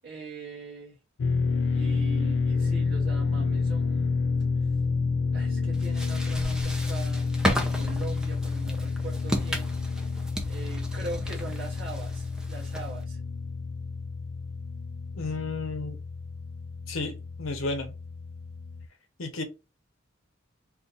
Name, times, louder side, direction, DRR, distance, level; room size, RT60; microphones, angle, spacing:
voice 1, 0.0-1.0 1.7-4.1 5.3-9.7 10.5-13.2, right 3 dB, 50° right, 0.8 m, -41 dB
sound 1, 1.2-18.9, left 4 dB, 70° left, 0.3 m, -29 dB
sound 2, 5.7-13.0, equal, 5° right, 0.5 m, -34 dB
voice 2, 15.1-16.0 16.9-17.9 19.2-19.4, left 3 dB, 90° left, 0.9 m, -32 dB
2.5 x 2.5 x 3.9 m
head